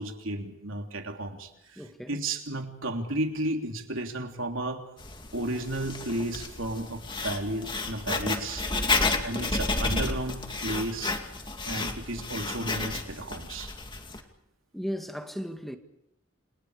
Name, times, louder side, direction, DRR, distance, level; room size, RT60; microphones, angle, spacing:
voice 1, 0.0-4.8 5.3-8.7 9.2-11.2 11.6-13.7, right 1 dB, 75° right, 3.4 m, -33 dB
voice 2, 1.8-2.2 9.0-9.3 14.7-15.8, equal, ahead, 1.7 m, -36 dB
Writing, 5.0-14.2, left 3 dB, 25° left, 2.4 m, -31 dB
30.0 x 28.0 x 5.0 m
head